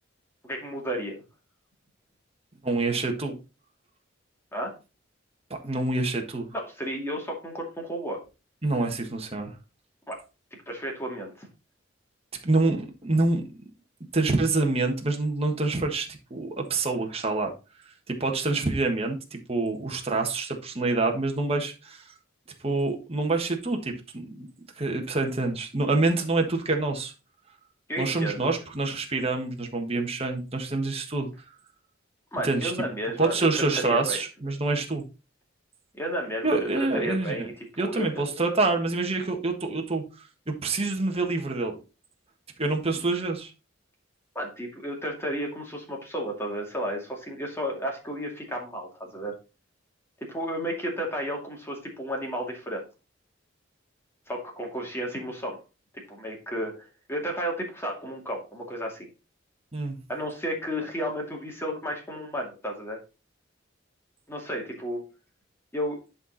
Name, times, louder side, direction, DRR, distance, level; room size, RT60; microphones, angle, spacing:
voice 1, 0.4-1.2 4.5-4.7 6.5-8.2 10.1-10.2 10.7-11.5 27.9-28.5 32.3-34.2 35.9-38.2 44.3-49.3 50.2-52.8 54.3-55.6 56.1-59.1 60.1-63.0 64.3-65.1 65.7-66.0, equal, 10° left, 0 dB, 2.3 m, -33 dB
voice 2, 2.6-3.4 5.6-6.5 8.6-9.5 12.4-13.4 14.1-17.5 18.1-22.0 22.6-24.5 24.8-27.1 28.0-31.3 32.4-32.7 33.2-35.0 36.4-37.5 37.8-40.0 40.5-41.8 42.6-43.5 59.7-60.0, right 3 dB, 30° right, 2 dB, 1.4 m, -26 dB
10.5 x 4.3 x 4.0 m, 0.30 s
head